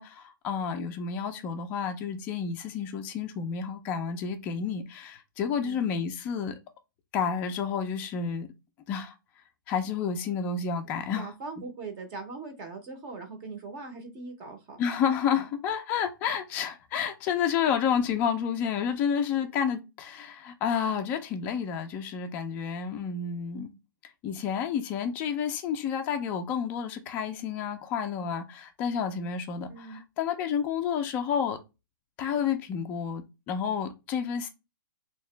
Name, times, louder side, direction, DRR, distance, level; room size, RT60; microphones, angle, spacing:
voice 1, 0.0-6.6 7.1-8.5 8.9-9.1 9.7-11.3 14.8-23.7 24.2-31.6 32.2-34.5, left 7 dB, 15° left, 0.4 m, -30 dB
voice 2, 11.2-14.8 15.3-15.5 29.7-30.0, right 4 dB, 20° right, 0.7 m, -41 dB
3.6 x 2.9 x 3.1 m
hypercardioid pair, 165°, 11 cm